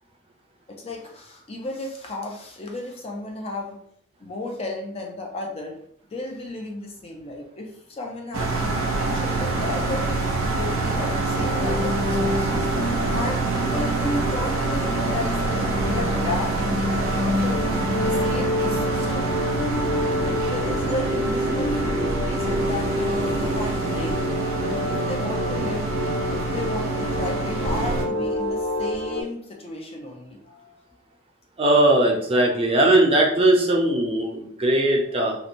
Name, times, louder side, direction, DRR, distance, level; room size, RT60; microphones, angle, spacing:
voice 1, 0.7-3.8 4.2-5.8 6.1-10.1 10.6-12.7 13.1-17.6 18.0-19.3 20.3-21.9 22.2-24.2 24.6-25.9 26.3-30.8 35.1-35.3, left 2 dB, 30° left, 1 dB, 0.4 m, -33 dB
sound 1, 8.3-28.0, right 3 dB, 85° right, 0.6 m, -26 dB
sound 2, 11.3-29.2, left 1 dB, 80° left, 0.5 m, -28 dB
voice 2, 31.6-35.4, right 1 dB, 30° right, 0 dB, 0.5 m, -19 dB
2.8 x 2.0 x 2.5 m, 0.66 s
head